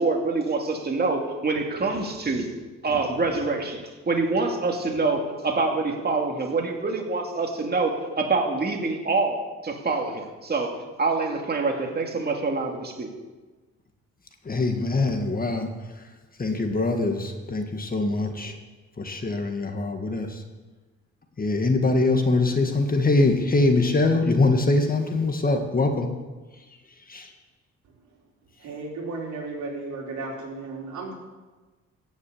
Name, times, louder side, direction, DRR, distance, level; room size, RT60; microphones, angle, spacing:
voice 1, 0.0-2.5 2.8-10.7 11.0-13.1, right 3 dB, 30° right, 2 dB, 2.4 m, -26 dB
voice 2, 14.5-15.7 16.4-18.5 19.0-20.4 21.4-26.1 27.1-27.3, left 2 dB, 30° left, 5 dB, 1.7 m, -23 dB
voice 3, 28.6-31.1, right 3 dB, 70° right, -2 dB, 3.9 m, -34 dB
15.0 x 6.4 x 8.6 m, 1.2 s
cardioid pair, 90°, 30 cm